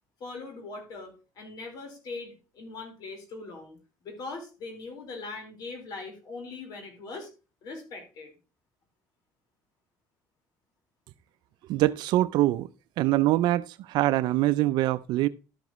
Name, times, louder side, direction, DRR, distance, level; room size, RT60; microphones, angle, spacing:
voice 1, 0.2-3.8 4.0-7.3 7.6-8.3, left 3 dB, 60° left, 4.4 m, -41 dB
voice 2, 11.7-12.7 13.0-15.3, right 15 dB, 70° right, 0.5 m, -24 dB
12.0 x 7.2 x 3.0 m
cardioid pair, 105°, 8 cm